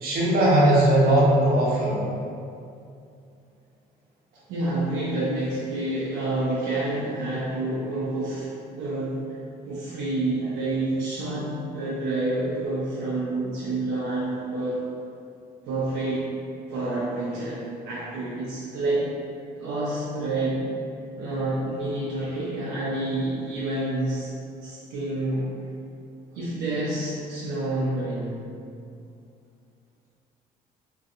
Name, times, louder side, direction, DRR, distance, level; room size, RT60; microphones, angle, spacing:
voice 1, 0.0-2.0, right 1 dB, 65° right, -6 dB, 0.8 m, -19 dB
voice 2, 4.5-9.2 9.6-14.8 15.7-16.3 16.7-19.1 19.6-20.7 21.2-24.3 24.6-25.5 26.3-28.4, right 2 dB, 85° right, -7 dB, 0.4 m, -28 dB
2.4 x 2.2 x 2.7 m, 2.5 s
cardioid pair, 110°, 17 cm